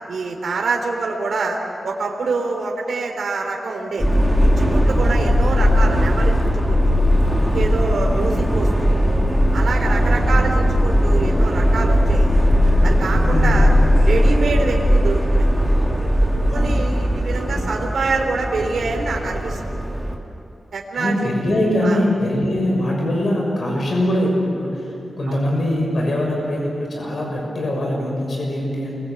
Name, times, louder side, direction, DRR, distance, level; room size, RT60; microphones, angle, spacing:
voice 1, 0.1-1.6 1.8-4.1 4.4-6.8 7.4-8.9 9.5-12.4 12.8-13.7 14.0-15.5 16.5-19.6 20.7-21.3 21.8-22.0 25.3-25.4, right 3 dB, 70° right, 0 dB, 3.7 m, -25 dB
Subway metro underground, 4.0-20.1, equal, 10° left, 3.0 m, -18 dB
voice 2, 5.0-5.3 8.0-8.4 10.1-10.4 13.2-13.6 16.5-16.8 17.4-17.6 20.9-29.0, left 1 dB, 50° left, -1 dB, 6.3 m, -23 dB
29.0 x 23.5 x 8.4 m, 2.7 s
wide cardioid pair, 175°, 0 cm